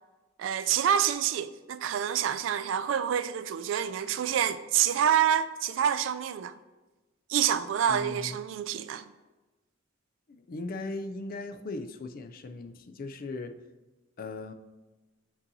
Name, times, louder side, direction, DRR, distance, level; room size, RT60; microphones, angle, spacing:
voice 1, 0.4-6.6 7.3-9.0, right 9 dB, 75° right, 0.3 m, -27 dB
voice 2, 7.9-8.4 10.3-13.5 14.2-14.5, left 2 dB, 50° left, 0.4 m, -38 dB
6.9 x 5.3 x 2.7 m
head